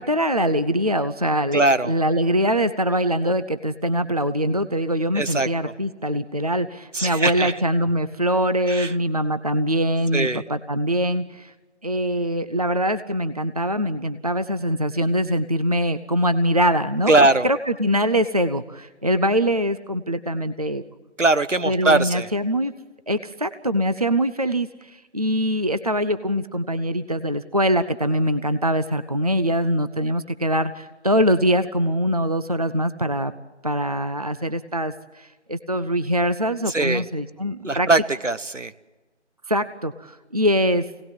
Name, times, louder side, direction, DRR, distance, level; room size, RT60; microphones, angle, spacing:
voice 1, 0.0-11.5 11.8-20.8 21.7-22.7 23.1-33.3 33.6-37.9 39.5-40.8, equal, 30° right, 11 dB, 0.7 m, -23 dB
voice 2, 1.5-1.9 5.1-5.7 6.9-7.5 8.7-8.9 10.1-10.4 17.1-17.5 21.2-22.3 36.7-37.0 37.6-38.7, right 2 dB, 80° right, 13 dB, 1.4 m, -20 dB
26.5 x 18.5 x 7.5 m, 1.2 s
figure-of-eight pair, 165°, 36 cm